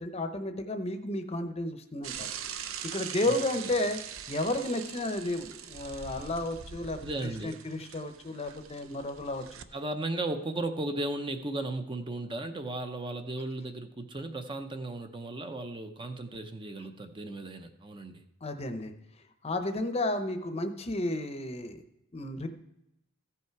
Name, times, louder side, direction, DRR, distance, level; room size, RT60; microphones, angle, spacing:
voice 1, 0.0-2.3 2.9-4.0 4.3-7.1 7.4-9.4 18.4-18.9 19.4-21.8 22.1-22.5, left 1 dB, 30° left, 8 dB, 0.7 m, -32 dB
Bicycle / Mechanisms, 2.0-9.6, right 8 dB, 65° right, 0.6 m, -42 dB
voice 2, 3.3-3.7 7.0-7.5 9.7-18.2, right 2 dB, 20° right, 7 dB, 0.6 m, -36 dB
15.5 x 5.7 x 4.6 m, 0.86 s
head